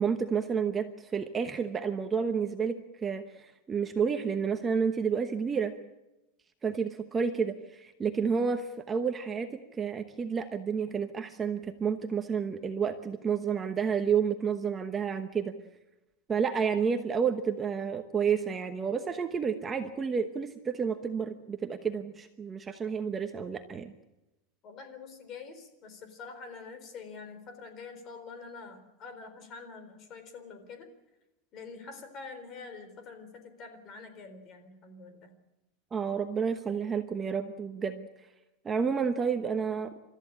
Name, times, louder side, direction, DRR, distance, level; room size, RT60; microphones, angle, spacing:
voice 1, 0.0-5.7 6.6-15.5 16.3-23.9 35.9-38.1 38.6-39.9, right 6 dB, 15° right, 6 dB, 1.0 m, -30 dB
voice 2, 24.6-30.9 31.5-35.4, left 4 dB, 30° left, 9 dB, 3.9 m, -46 dB
30.0 x 14.0 x 8.6 m, 0.96 s
supercardioid pair, 160°, 0 cm